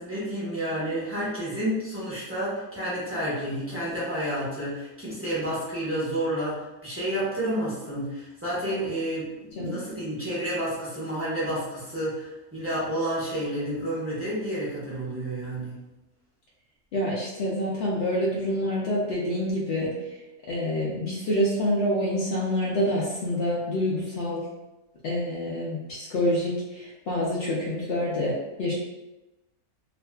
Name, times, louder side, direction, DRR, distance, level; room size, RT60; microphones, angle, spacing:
voice 1, 0.0-15.8, right 1 dB, 15° right, -10 dB, 0.4 m, -30 dB
voice 2, 16.9-19.9 20.5-24.5 25.0-28.7, left 1 dB, 85° left, -5 dB, 0.5 m, -27 dB
2.5 x 2.4 x 2.2 m, 1.0 s
omnidirectional pair, 1.6 m